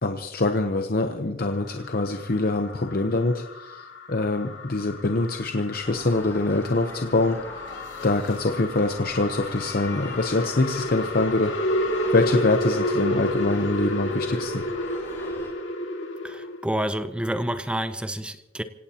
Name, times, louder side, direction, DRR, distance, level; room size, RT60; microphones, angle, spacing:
voice 1, 0.0-3.4 4.1-7.4 8.0-11.5 12.1-14.7, left 2 dB, 50° left, 7 dB, 0.8 m, -24 dB
sound 1, 1.5-16.7, left 1 dB, 85° left, 2.3 m, -31 dB
sound 2, 5.8-15.5, left 1 dB, 15° left, 4.8 m, -42 dB
sound 3, 7.6-8.6 9.7-12.8, left 3 dB, 70° left, 3.5 m, -47 dB
voice 2, 16.2-18.6, right 1 dB, 5° right, 11 dB, 0.5 m, -29 dB
26.0 x 17.5 x 2.9 m, 1.0 s
head